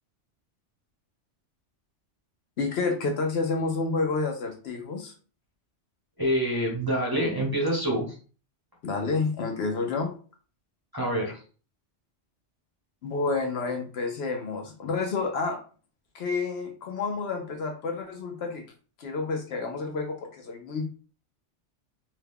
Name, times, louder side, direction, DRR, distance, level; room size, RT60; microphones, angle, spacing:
voice 1, 2.6-5.1 8.8-10.1 13.0-15.6 16.1-18.6 19.0-20.9, left 4 dB, 65° left, 3 dB, 0.8 m, -29 dB
voice 2, 6.2-8.2 10.9-11.4, equal, 20° right, -4 dB, 0.7 m, -26 dB
2.8 x 2.2 x 3.5 m, 0.38 s
omnidirectional pair, 1.2 m